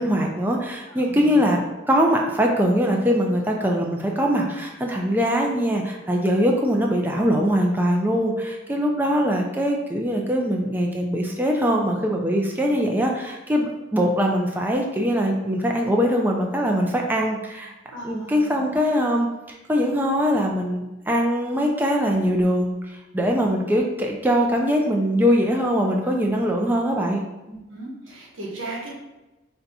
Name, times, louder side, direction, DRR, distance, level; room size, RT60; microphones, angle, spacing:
voice 1, 0.0-1.6 1.9-17.7 18.0-27.2, equal, 10° right, 0 dB, 0.4 m, -22 dB
voice 2, 0.9-1.4 17.9-18.7 25.8-26.5 27.4-29.0, right 2 dB, 80° right, -3 dB, 1.1 m, -37 dB
3.4 x 2.6 x 4.1 m, 1.0 s
head